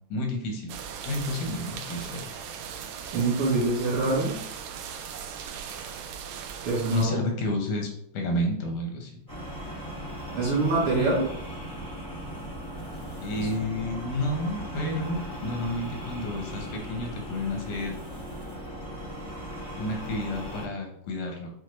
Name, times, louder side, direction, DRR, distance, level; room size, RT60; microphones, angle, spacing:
voice 1, 0.1-0.8 1.1-2.4 6.9-9.1 13.2-18.0 19.8-21.5, left 1 dB, 90° left, 2 dB, 2.4 m, -30 dB
sound 1, 0.7-7.1, right 7 dB, 80° right, 1.7 m, -38 dB
voice 2, 3.1-4.3 6.6-7.2 10.3-11.2 13.4-13.5, right 2 dB, 60° right, -7 dB, 1.4 m, -25 dB
sound 2, 9.3-20.7, equal, 15° left, 0.6 m, -38 dB
6.3 x 2.1 x 3.1 m, 0.71 s
omnidirectional pair, 3.5 m